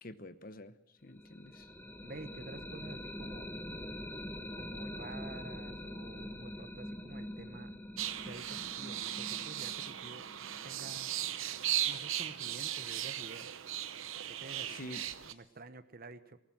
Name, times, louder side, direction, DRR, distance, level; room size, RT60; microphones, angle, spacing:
voice 1, 0.0-0.7 1.0-1.7 14.7-15.3, left 1 dB, 45° left, 12 dB, 1.0 m, -48 dB
sound 1, 1.2-10.9, left 1 dB, 10° left, 1.3 m, -44 dB
voice 2, 2.0-3.7 4.6-7.8 8.2-10.3 10.6-11.1 11.8-13.5 14.4-15.0 15.3-16.4, right 2 dB, 45° right, 12 dB, 1.1 m, -50 dB
sound 2, 8.0-15.3, right 12 dB, 75° right, 0.8 m, -37 dB
20.0 x 19.0 x 7.7 m, 0.82 s
head